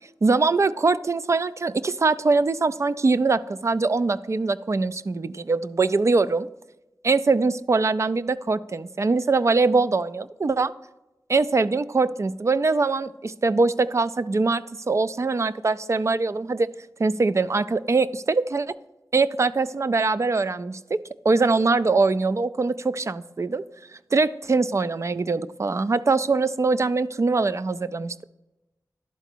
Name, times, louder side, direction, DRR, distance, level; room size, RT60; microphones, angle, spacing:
voice 1, 0.2-6.5 7.0-10.7 11.3-16.7 17.0-18.7 19.1-23.6 24.1-28.2, right 3 dB, 40° right, 15 dB, 0.4 m, -22 dB
11.5 x 4.0 x 4.5 m, 0.97 s
cardioid pair, 50°, 7 cm